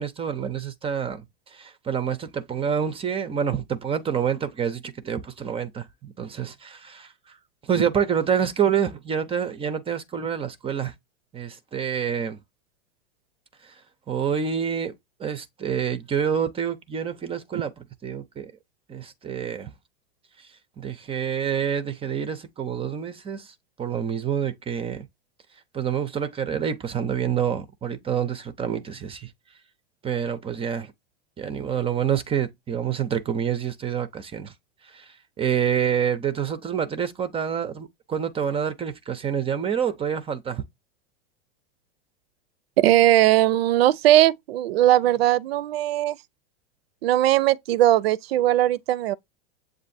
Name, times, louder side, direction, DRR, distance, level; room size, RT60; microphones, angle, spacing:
voice 1, 0.0-7.1 7.6-10.9 11.3-12.4 13.6-13.7 14.1-14.9 15.2-18.5 18.9-19.7 20.4-25.1 25.7-29.3 30.0-30.9 31.4-34.5 34.8-40.6, right 8 dB, 20° right, 0.5 m, -27 dB
voice 2, 42.8-46.2 47.0-49.1, right 14 dB, 80° right, 0.5 m, -19 dB
7.4 x 2.5 x 2.5 m
hypercardioid pair, 120°, 31 cm